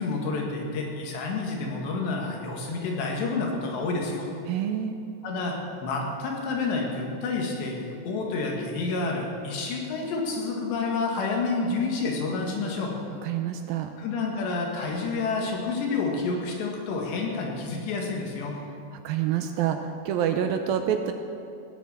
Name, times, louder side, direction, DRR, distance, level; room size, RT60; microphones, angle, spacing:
voice 1, 0.0-4.3 5.2-12.9 14.0-18.6, left 3 dB, 85° left, 0 dB, 4.1 m, -29 dB
voice 2, 4.5-5.0 13.2-13.9 18.9-21.1, right 9 dB, 85° right, 6 dB, 2.1 m, -27 dB
16.5 x 9.9 x 7.3 m, 2.6 s
omnidirectional pair, 4.9 m